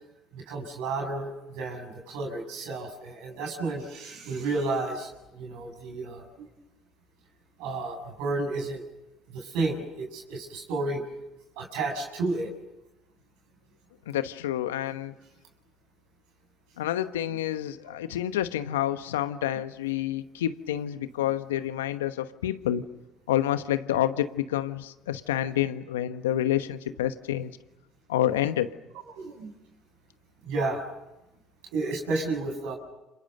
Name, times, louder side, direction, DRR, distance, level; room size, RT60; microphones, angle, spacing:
voice 1, 0.3-6.5 7.6-8.8 9.3-11.0 11.6-12.5 17.9-18.0 21.2-21.3 29.1-29.5 30.4-30.8 31.7-32.7, right 3 dB, 75° right, 1 dB, 7.2 m, -32 dB
voice 2, 14.1-15.1 16.8-22.8 23.3-27.5 28.1-28.8, left 12 dB, 85° left, 11 dB, 1.1 m, -28 dB
30.0 x 27.0 x 6.8 m, 0.97 s
hypercardioid pair, 65°, 0 cm